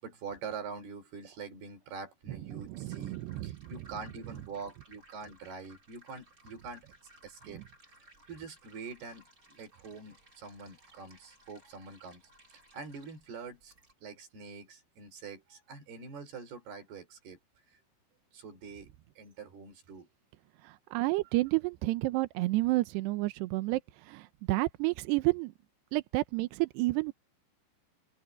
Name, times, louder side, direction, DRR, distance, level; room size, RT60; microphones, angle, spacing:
voice 1, 0.0-3.2 3.4-6.9 7.2-7.6 8.3-12.2 12.5-13.7 14.0-17.4 18.3-20.1, right 5 dB, 55° right, 6.4 m, -45 dB
sound 1, 2.2-13.9, right 1 dB, 20° right, 4.2 m, -61 dB
voice 2, 2.5-3.5 20.6-25.5 25.9-27.1, right 20 dB, 80° right, 2.6 m, -30 dB
open air
omnidirectional pair, 5.5 m